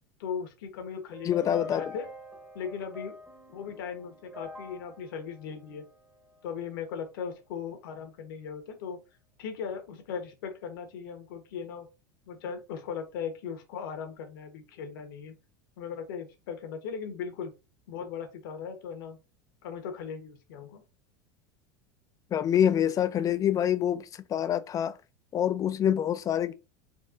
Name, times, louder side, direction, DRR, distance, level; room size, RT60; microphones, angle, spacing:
voice 1, 0.2-2.1 2.5-3.1 3.5-5.8 6.4-9.0 9.4-11.9 12.3-15.3 15.8-17.5 17.9-19.2 19.6-20.8, left 6 dB, 70° left, 1.1 m, -38 dB
sound 1, 1.1-6.4, left 2 dB, 10° right, 1.0 m, -45 dB
voice 2, 1.3-1.8 22.3-24.0 24.3-24.9 25.3-26.5, left 10 dB, 30° left, 0.4 m, -26 dB
4.2 x 2.8 x 2.5 m
hypercardioid pair, 90°, 11 cm